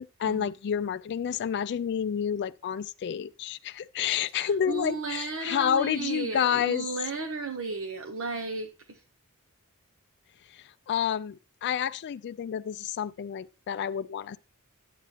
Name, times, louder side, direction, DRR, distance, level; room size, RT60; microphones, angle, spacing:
voice 1, 0.0-6.8 10.5-14.4, left 8 dB, 50° left, 0.3 m, -29 dB
voice 2, 4.3-9.0, right 4 dB, 65° right, 0.8 m, -34 dB
11.5 x 8.3 x 2.8 m
head